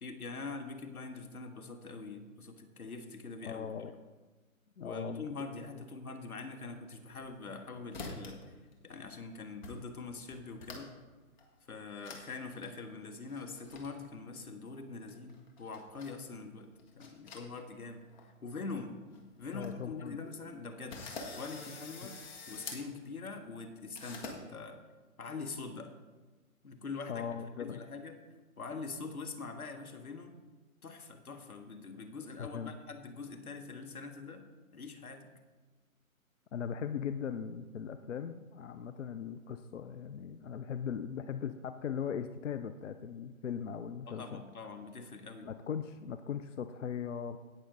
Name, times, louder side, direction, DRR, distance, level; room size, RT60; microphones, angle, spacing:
voice 1, 0.0-3.7 4.8-8.6 8.8-11.0 11.7-19.0 19.4-22.2 22.5-24.8 25.2-25.9 26.6-27.3 27.6-28.2 28.6-30.3 30.8-34.5 34.7-35.2 44.1-45.5, left 4 dB, 85° left, 6 dB, 1.8 m, -44 dB
voice 2, 3.4-3.9 4.8-5.2 19.5-20.2 27.1-27.8 32.4-32.7 36.5-44.4 45.4-47.4, left 7 dB, 60° left, 9 dB, 0.6 m, -39 dB
sound 1, 7.0-7.6 7.9-8.5 8.7-9.2 9.6-9.7 10.0-11.0 11.4-11.5 12.0-12.2 12.5-12.7 13.3-13.9 15.1-16.2 16.7-17.8 18.1-18.2 18.8-18.9 19.1-19.2 19.5-19.7 20.2-20.3 20.9-22.8 24.0-24.4, left 4 dB, 30° left, 1.8 m, -46 dB
17.0 x 6.5 x 3.9 m, 1.3 s
hypercardioid pair, 155°, 43 cm